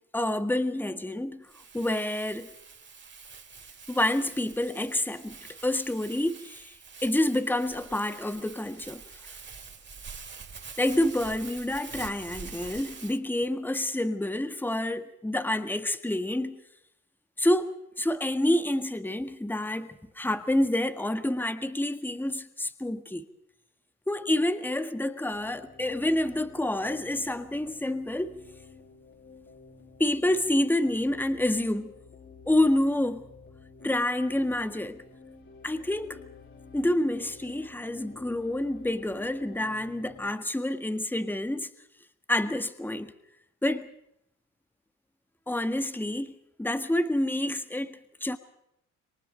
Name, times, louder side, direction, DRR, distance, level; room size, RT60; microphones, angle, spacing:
voice 1, 0.0-1.5 1.7-2.5 3.9-5.4 5.6-6.7 7.0-9.0 10.8-16.6 17.4-23.2 24.1-28.4 30.0-31.9 32.5-33.3 33.8-35.0 35.6-36.2 36.7-41.7 42.3-43.1 43.6-43.9 45.5-46.3 46.6-48.4, left 1 dB, 5° left, 9 dB, 1.7 m, -28 dB
Crumpling crinkling, 1.5-13.2, right 5 dB, 40° right, 3.1 m, -46 dB
sound 1, 25.3-40.3, left 3 dB, 45° left, 5.5 m, -51 dB
28.0 x 23.0 x 5.3 m, 0.79 s
cardioid pair, 90°, 30 cm